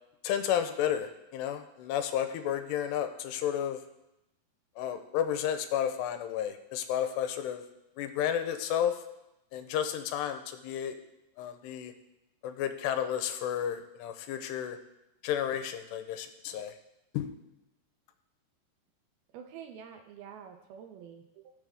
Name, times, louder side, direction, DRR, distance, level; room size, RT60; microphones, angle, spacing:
voice 1, 0.2-3.8 4.8-7.6 8.0-9.0 9.5-11.0 11.4-11.9 12.4-14.8 15.2-16.7 17.1-17.3, left 10 dB, 90° left, 8 dB, 2.9 m, -32 dB
voice 2, 19.3-21.5, right 8 dB, 80° right, 5 dB, 2.3 m, -47 dB
17.5 x 7.2 x 3.5 m, 0.90 s
omnidirectional pair, 4.8 m